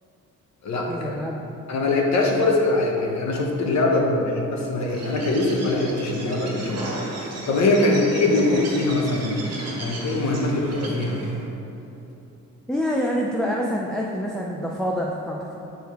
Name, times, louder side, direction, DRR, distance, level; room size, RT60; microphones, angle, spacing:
voice 1, 0.9-1.5 12.7-15.6, equal, ahead, -2 dB, 0.4 m, -26 dB
voice 2, 1.7-6.8 7.5-9.4 9.7-11.2, left 2 dB, 65° left, 0 dB, 1.0 m, -22 dB
Bird, 4.8-11.4, right 1 dB, 55° right, 1.5 m, -34 dB
6.2 x 4.5 x 3.5 m, 3.0 s
cardioid pair, 90°, 30 cm